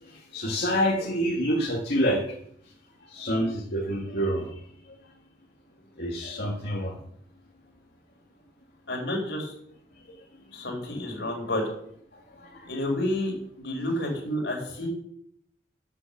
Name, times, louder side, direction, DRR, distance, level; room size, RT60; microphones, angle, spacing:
voice 1, 0.3-2.2 3.1-4.5 6.0-7.0 12.5-12.7, equal, 65° left, -4 dB, 2.1 m, -27 dB
voice 2, 8.9-9.5 10.5-11.6 12.7-14.9, left 1 dB, 85° left, 1 dB, 4.6 m, -30 dB
8.4 x 7.8 x 7.6 m, 0.69 s
head